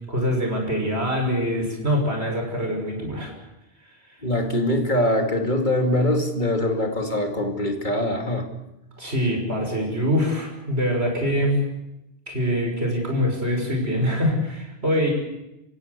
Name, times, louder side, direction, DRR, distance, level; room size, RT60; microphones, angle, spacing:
voice 1, 0.1-3.3 9.0-11.6 12.3-15.1, equal, 90° right, 1 dB, 6.6 m, -24 dB
voice 2, 4.2-8.5, left 1 dB, 50° left, 4 dB, 2.8 m, -23 dB
29.5 x 16.0 x 8.3 m, 0.93 s
omnidirectional pair, 1.1 m